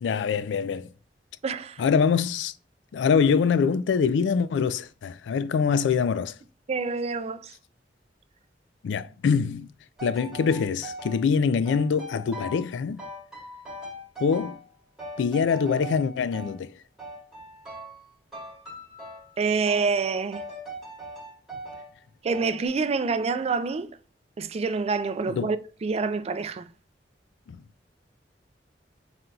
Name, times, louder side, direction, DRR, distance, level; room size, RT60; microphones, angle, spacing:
voice 1, 0.0-0.9 1.8-2.5 2.9-6.3 8.8-9.7 10.0-13.0 14.2-14.6 15.2-16.7 25.3-25.5 27.5-27.6, left 6 dB, 85° left, 0.3 m, -24 dB
voice 2, 1.4-1.8 6.7-7.5 19.4-20.4 22.2-23.9 24.4-26.7, right 4 dB, 35° right, 0.3 m, -27 dB
sound 1, 10.0-11.2 11.7-12.7 13.0-14.7 15.0-16.6 17.0-18.0 18.3-19.3 19.7-19.9 20.3-21.9 22.3-22.7, right 1 dB, 5° right, 1.9 m, -40 dB
4.3 x 3.8 x 2.2 m
head